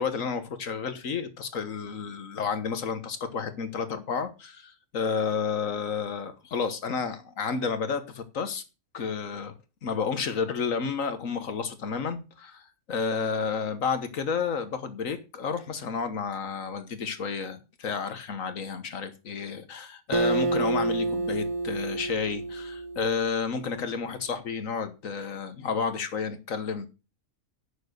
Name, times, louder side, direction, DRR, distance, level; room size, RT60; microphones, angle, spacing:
voice 1, 0.0-8.6 8.9-9.5 9.8-26.9, left 5 dB, 70° left, 1.5 m, -31 dB
Acoustic guitar, 20.1-23.6, right 2 dB, 40° right, 0.5 m, -29 dB
9.3 x 6.6 x 6.4 m
omnidirectional pair, 1.5 m